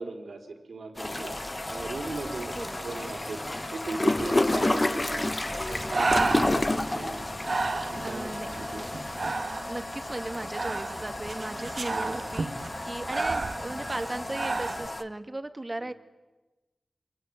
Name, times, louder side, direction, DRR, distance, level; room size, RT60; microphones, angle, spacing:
voice 1, 0.0-1.4 1.7-3.4 3.7-5.3 5.6-7.3 7.7-8.9 11.9-12.2 15.8-15.9, right 3 dB, 85° right, 3 dB, 4.2 m, -38 dB
sound 1, 0.9-9.3, equal, 5° left, 2.2 m, -42 dB
sound 2, 1.0-15.0, left 2 dB, 30° left, 1.3 m, -31 dB
Breathing, 5.4-14.9, right 3 dB, 55° right, 1.7 m, -32 dB
voice 2, 8.0-8.5 9.7-15.9, right 2 dB, 30° right, 9 dB, 1.8 m, -36 dB
25.5 x 22.5 x 9.4 m, 1.1 s
wide cardioid pair, 75°, 0 cm